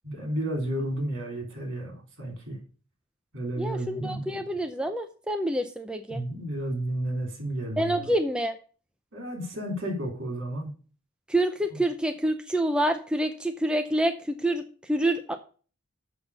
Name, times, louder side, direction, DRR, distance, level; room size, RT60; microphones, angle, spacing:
voice 1, 0.0-2.6 3.3-4.5 6.1-8.1 9.1-10.7 11.7-11.8, right 1 dB, 60° right, 2 dB, 3.9 m, -32 dB
voice 2, 3.6-6.2 7.8-8.6 11.3-15.5, right 1 dB, 5° right, 5 dB, 0.6 m, -27 dB
7.2 x 6.0 x 6.6 m, 0.38 s
head